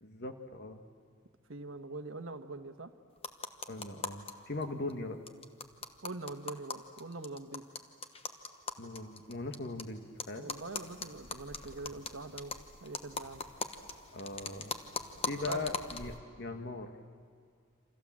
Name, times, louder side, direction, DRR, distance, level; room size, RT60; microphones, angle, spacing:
voice 1, 0.0-0.8 3.7-5.2 8.8-10.5 14.1-14.7 15.2-16.9, left 2 dB, 50° left, 6 dB, 1.6 m, -40 dB
voice 2, 1.5-2.9 6.0-7.6 10.4-12.5 12.8-13.4 15.3-15.7, right 3 dB, 70° right, 7 dB, 1.3 m, -43 dB
sound 1, 3.2-4.3 4.6-4.7 4.9-5.0 5.3-9.8 10.2-16.2, left 4 dB, 30° left, 1.1 m, -41 dB
28.5 x 26.5 x 7.5 m, 2.1 s
head